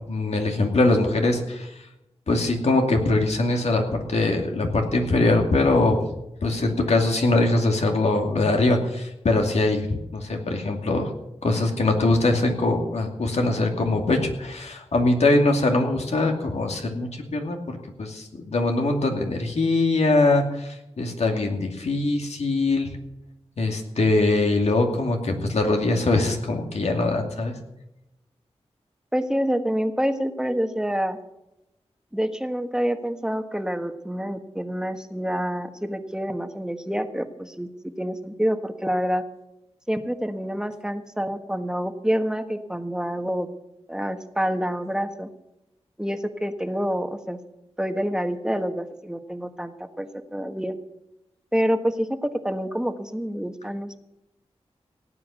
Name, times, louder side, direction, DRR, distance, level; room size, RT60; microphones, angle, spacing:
voice 1, 0.0-1.7 2.3-6.0 6.4-11.1 11.4-22.9 23.6-27.6, left 2 dB, 75° left, 3 dB, 2.5 m, -22 dB
voice 2, 29.1-31.2 32.1-37.7 38.0-39.2 39.9-43.5 43.9-45.3 46.0-47.4 47.8-50.7 51.5-54.0, equal, 5° right, 7 dB, 1.4 m, -27 dB
17.5 x 9.0 x 7.0 m, 0.90 s
cardioid pair, 60°, 11 cm